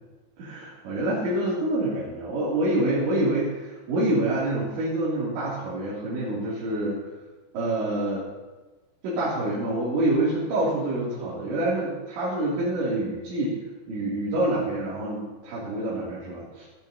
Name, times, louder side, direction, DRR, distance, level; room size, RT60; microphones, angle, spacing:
voice 1, 0.4-7.0 7.5-8.2 9.0-13.6 13.9-16.7, right 1 dB, 85° right, -9 dB, 5.5 m, -26 dB
19.5 x 12.5 x 3.0 m, 1.2 s
omnidirectional pair, 5.0 m